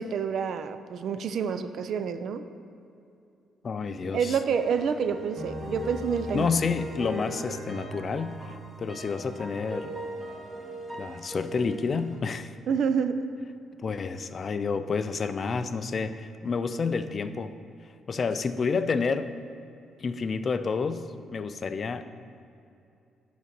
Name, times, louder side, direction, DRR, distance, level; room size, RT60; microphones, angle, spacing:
voice 1, 0.0-2.4 4.1-6.6 12.7-13.3, right 6 dB, 55° right, 10 dB, 0.4 m, -28 dB
voice 2, 3.6-4.4 6.3-10.0 11.0-12.5 13.8-17.5 18.1-19.4 20.0-22.0, left 5 dB, 35° left, 11 dB, 0.3 m, -29 dB
sound 1, 4.5-12.2, right 1 dB, 20° right, 1.3 m, -38 dB
9.0 x 4.0 x 5.9 m, 2.7 s
cardioid pair, 155°, 0 cm